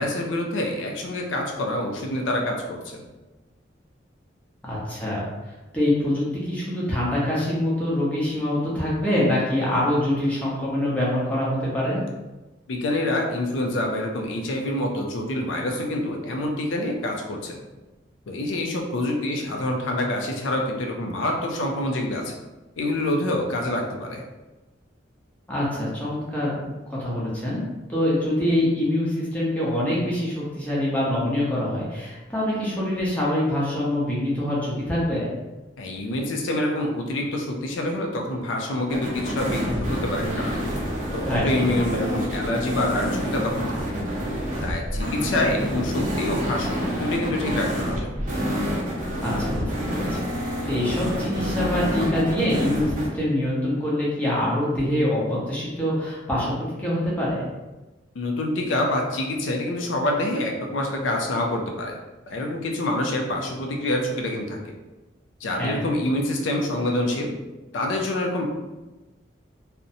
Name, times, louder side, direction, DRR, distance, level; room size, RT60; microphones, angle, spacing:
voice 1, 0.0-3.1 12.7-17.6 18.3-22.3 22.8-24.2 35.8-40.6 41.1-44.0 44.6-48.1 58.1-61.9 62.3-64.7 65.4-67.3 67.7-68.4, left 1 dB, 85° left, 1 dB, 0.4 m, -26 dB
voice 2, 4.6-5.2 5.7-12.0 25.5-26.6 26.9-27.6 27.9-35.3 41.2-41.5 49.2-56.5 56.8-57.4 65.6-65.8, left 1 dB, 10° left, -7 dB, 0.6 m, -25 dB
sound 1, 38.9-53.1, equal, 45° right, 0.6 m, -28 dB
2.6 x 2.1 x 2.6 m, 1.1 s
head